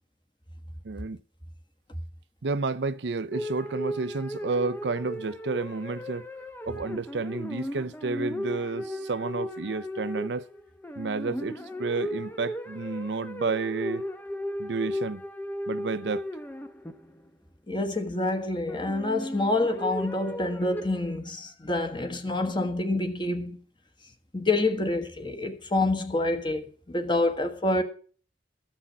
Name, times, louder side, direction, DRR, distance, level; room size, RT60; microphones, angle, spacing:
voice 1, 0.8-1.2 2.4-6.3 6.7-10.5 11.0-14.0 14.6-15.2 15.7-16.3, right 4 dB, 80° right, 0.6 m, -31 dB
sound 1, 3.3-17.3 18.7-21.2, equal, 10° left, 0.8 m, -36 dB
voice 2, 17.7-23.6 24.3-27.8, left 2 dB, 25° left, 1.4 m, -27 dB
14.0 x 6.2 x 7.4 m
head